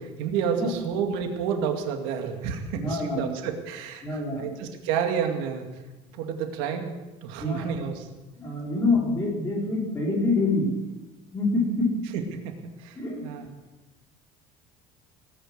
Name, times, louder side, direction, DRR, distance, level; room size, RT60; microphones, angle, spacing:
voice 1, 0.0-5.7 6.1-8.1 12.3-13.0 13.2-13.5, right 7 dB, 80° right, 4 dB, 2.2 m, -30 dB
voice 2, 2.8-3.3 4.0-4.5 7.4-7.7 8.4-10.7 11.3-11.9 12.9-13.2, left 3 dB, 20° left, -3 dB, 4.9 m, -26 dB
18.0 x 9.6 x 7.9 m, 1.1 s
cardioid pair, 165°, 14 cm